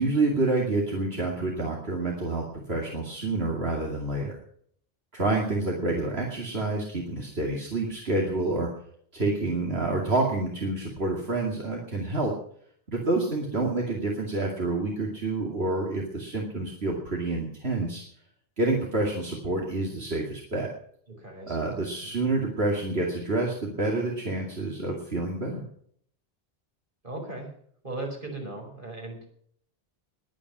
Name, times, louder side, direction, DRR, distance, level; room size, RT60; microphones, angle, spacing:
voice 1, 0.0-4.4 5.1-8.7 9.1-12.3 12.9-18.0 18.6-20.7 21.4-25.6, right 2 dB, 75° right, -1 dB, 2.7 m, -28 dB
voice 2, 21.2-21.6 22.0-22.3 27.0-27.5 27.8-29.3, right 2 dB, 55° right, 2 dB, 5.2 m, -37 dB
20.5 x 9.2 x 6.1 m, 0.63 s
omnidirectional pair, 1.0 m